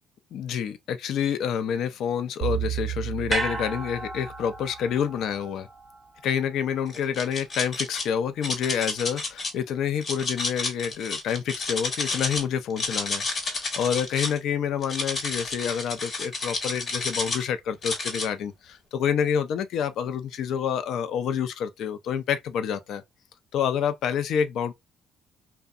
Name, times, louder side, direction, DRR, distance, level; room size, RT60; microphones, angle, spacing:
voice 1, 0.3-5.7 6.2-23.0 23.5-24.7, left 8 dB, 75° left, 0.4 m, -28 dB
sound 1, 2.4-4.9, right 12 dB, 65° right, 0.5 m, -33 dB
sound 2, 3.3-7.6 8.0-8.1, right 2 dB, 20° right, 0.5 m, -35 dB
sound 3, 6.9-8.0 8.4-9.5 10.0-12.4 12.7-14.4 14.8-17.5 17.8-18.3, left 3 dB, 45° left, 1.1 m, -30 dB
2.7 x 2.1 x 2.4 m
cardioid pair, 85°, 0 cm